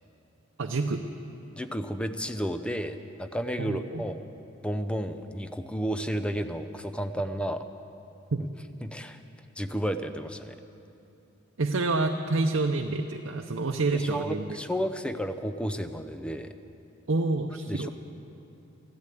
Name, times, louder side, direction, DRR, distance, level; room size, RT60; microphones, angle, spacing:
voice 1, 0.6-1.1 3.6-4.0 8.3-8.4 11.6-14.6 17.1-17.9, right 3 dB, 85° right, 4 dB, 0.7 m, -28 dB
voice 2, 1.5-4.2 4.6-7.7 8.8-9.2 9.6-10.6 13.9-16.5 17.7-17.9, equal, 5° left, 9 dB, 0.6 m, -32 dB
14.0 x 12.0 x 8.3 m, 2.8 s
head